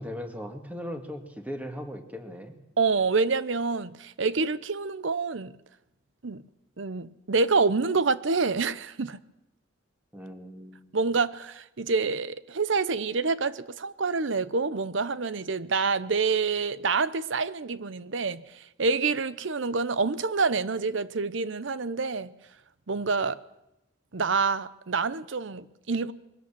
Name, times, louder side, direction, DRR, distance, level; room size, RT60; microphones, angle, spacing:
voice 1, 0.0-2.6 10.1-10.9, equal, 10° right, 2.2 m, -38 dB
voice 2, 2.8-5.5 6.2-6.4 6.8-9.2 10.9-22.3 22.9-23.4 24.1-26.1, right 4 dB, 70° right, 0.8 m, -27 dB
22.0 x 17.5 x 7.5 m
head